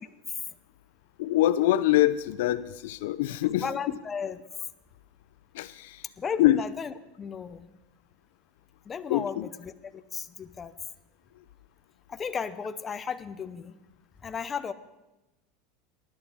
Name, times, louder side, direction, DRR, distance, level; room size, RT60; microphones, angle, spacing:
voice 1, 1.2-3.7 5.5-6.0 6.4-6.6 9.1-9.4, left 14 dB, 80° left, 15 dB, 0.5 m, -24 dB
voice 2, 3.4-4.4 6.2-7.7 8.9-10.7 12.1-13.7 14.2-14.7, left 6 dB, 25° left, 11 dB, 0.7 m, -35 dB
19.5 x 11.0 x 3.5 m, 1.0 s
supercardioid pair, 125°, 0 cm